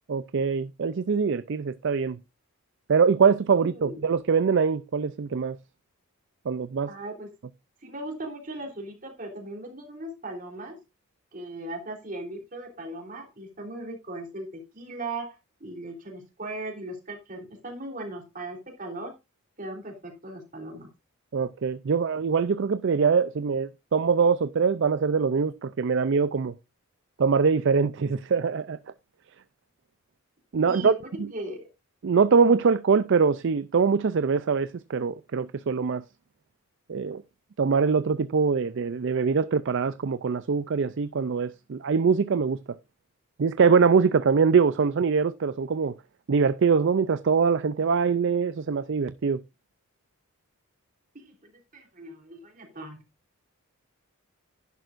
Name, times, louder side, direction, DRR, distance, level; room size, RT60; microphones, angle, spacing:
voice 1, 0.1-2.2 2.9-5.6 6.5-6.9 21.3-26.5 27.2-28.8 30.5-30.9 31.2-31.3 32.0-36.0 36.9-37.2 37.6-42.6 43.4-45.9 46.3-49.4, right 5 dB, 55° right, 0.4 m, -23 dB
voice 2, 6.9-7.3 7.8-10.8 11.3-19.1 19.6-20.9 30.7-31.0 31.3-31.7 51.1-53.0, right 2 dB, 40° right, 3.5 m, -38 dB
11.0 x 10.5 x 2.5 m
head